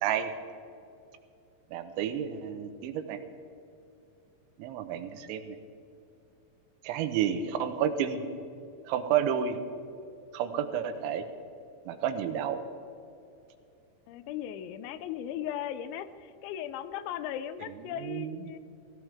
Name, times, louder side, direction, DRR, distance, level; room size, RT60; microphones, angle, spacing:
voice 1, 0.0-0.3 1.7-3.2 4.6-5.6 6.8-8.2 8.8-9.6 10.3-11.3 11.9-12.6 18.0-18.4, right 9 dB, 85° right, 9 dB, 3.2 m, -30 dB
voice 2, 14.1-18.6, left 10 dB, 90° left, 13 dB, 3.1 m, -37 dB
17.5 x 16.5 x 3.6 m, 2.7 s
omnidirectional pair, 5.2 m